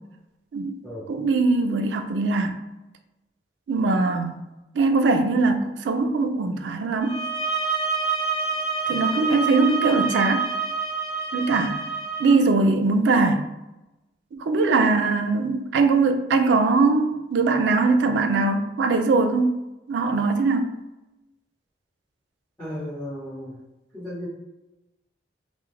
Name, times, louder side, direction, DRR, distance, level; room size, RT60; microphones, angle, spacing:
voice 1, 1.1-2.6 3.7-4.4 4.7-7.2 8.9-10.5 11.3-11.8 12.2-13.4 14.3-19.6 19.9-20.7, right 3 dB, 85° right, 7 dB, 0.3 m, -21 dB
sound 1, 7.0-12.4, right 5 dB, 30° left, 0.7 m, -27 dB
voice 2, 22.6-23.6 23.9-24.3, left 1 dB, 5° left, -10 dB, 1.0 m, -34 dB
2.3 x 2.1 x 3.1 m, 0.99 s
head